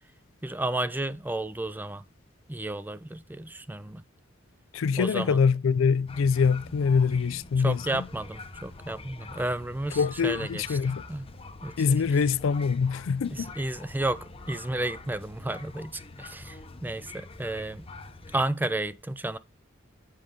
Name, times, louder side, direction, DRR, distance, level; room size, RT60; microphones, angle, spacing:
voice 1, 0.4-2.0 2.5-4.0 5.0-5.4 7.6-11.2 11.6-12.0 13.3-14.2 14.5-15.9 16.2-17.9 18.3-19.4, right 2 dB, 10° right, 0.4 m, -32 dB
voice 2, 4.7-8.1 10.0-11.0 11.8-13.5, left 5 dB, 85° left, 0.4 m, -24 dB
sound 1, 6.1-18.5, left 3 dB, 30° left, 0.8 m, -45 dB
7.4 x 6.5 x 3.7 m
head